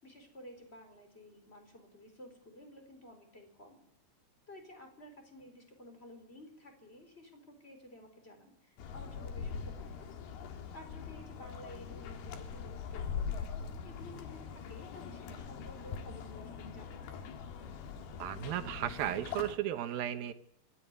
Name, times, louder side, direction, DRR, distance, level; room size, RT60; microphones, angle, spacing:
voice 1, 0.0-3.8 4.5-10.2 10.7-17.3, left 1 dB, 15° left, 5 dB, 4.0 m, -53 dB
sound 1, 8.8-19.5, left 6 dB, 75° left, 3.5 m, -42 dB
voice 2, 18.2-20.3, right 11 dB, 70° right, 10 dB, 2.6 m, -35 dB
25.5 x 14.0 x 9.6 m, 0.77 s
omnidirectional pair, 4.6 m